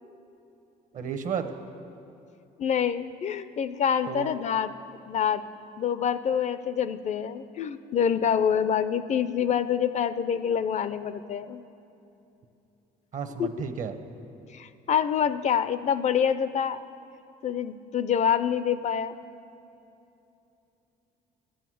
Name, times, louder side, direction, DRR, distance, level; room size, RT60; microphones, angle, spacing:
voice 1, 0.9-1.5 4.1-4.3 13.1-13.9, right 7 dB, 50° right, 8 dB, 0.9 m, -32 dB
voice 2, 2.6-4.7 5.1-5.4 5.8-11.6 13.4-13.5 14.5-16.8 17.4-19.2, left 8 dB, 45° left, 13 dB, 0.4 m, -26 dB
11.5 x 7.9 x 7.6 m, 2.8 s
cardioid pair, 110°, 17 cm